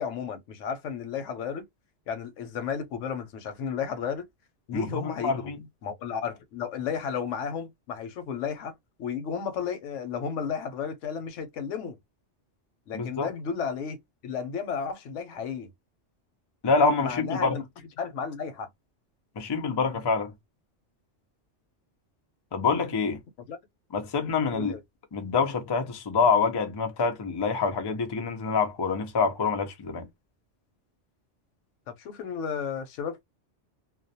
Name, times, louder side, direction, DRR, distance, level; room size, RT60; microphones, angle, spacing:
voice 1, 0.0-1.6 2.1-4.3 4.7-5.5 5.8-8.7 9.0-12.0 12.9-14.0 14.2-15.7 17.0-18.7 23.5-23.6 24.5-24.8 31.9-33.2, left 6 dB, 90° left, 1.0 m, -33 dB
voice 2, 4.7-5.6 12.9-13.3 16.6-17.6 19.4-20.3 22.5-23.2 23.9-24.7 25.1-30.1, left 4 dB, 40° left, 0.4 m, -26 dB
2.3 x 2.0 x 2.6 m
omnidirectional pair, 1.2 m